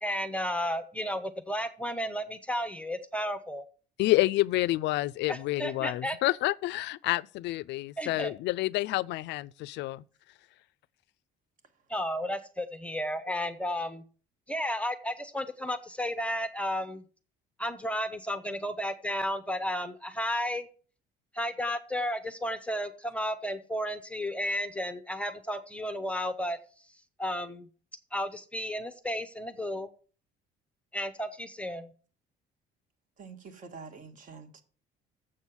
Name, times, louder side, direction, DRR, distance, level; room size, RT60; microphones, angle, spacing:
voice 1, 0.0-3.7 5.3-6.2 8.0-8.3 11.9-14.0 14.5-17.0 17.6-20.7 21.3-26.6 27.2-27.7 28.1-29.9 30.9-31.9, equal, 5° left, 0.7 m, -33 dB
voice 2, 4.0-10.0, left 18 dB, 75° left, 0.4 m, -28 dB
voice 3, 33.2-34.6, right 5 dB, 45° right, 1.7 m, -46 dB
7.6 x 6.2 x 7.1 m
cardioid pair, 145°, 18 cm